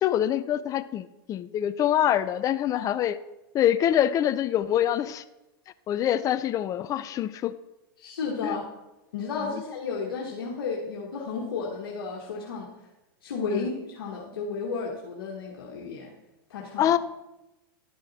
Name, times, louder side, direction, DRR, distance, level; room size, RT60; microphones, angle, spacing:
voice 1, 0.0-3.2 3.5-5.2 5.9-7.5 8.4-8.6 13.5-13.7 16.8-17.0, left 11 dB, 30° left, 13 dB, 0.5 m, -25 dB
voice 2, 8.0-8.7 9.1-12.7 13.2-16.1 16.5-16.9, left 4 dB, 85° left, -3 dB, 1.5 m, -33 dB
11.5 x 6.3 x 4.2 m, 0.97 s
hypercardioid pair, 120°, 12 cm